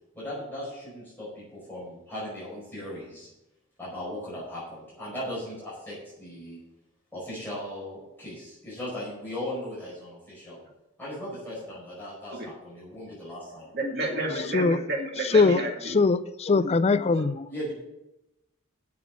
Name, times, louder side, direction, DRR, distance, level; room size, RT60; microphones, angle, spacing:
voice 1, 0.1-3.3 3.8-6.6 7.1-10.6 11.0-13.7 17.5-17.7, left 1 dB, 10° left, 4.9 m, -38 dB
voice 2, 13.7-16.0 17.1-17.3, right 2 dB, 50° right, 2.1 m, -31 dB
voice 3, 14.3-14.8 15.2-17.5, left 4 dB, 30° left, 0.4 m, -22 dB
9.3 x 7.2 x 7.3 m
head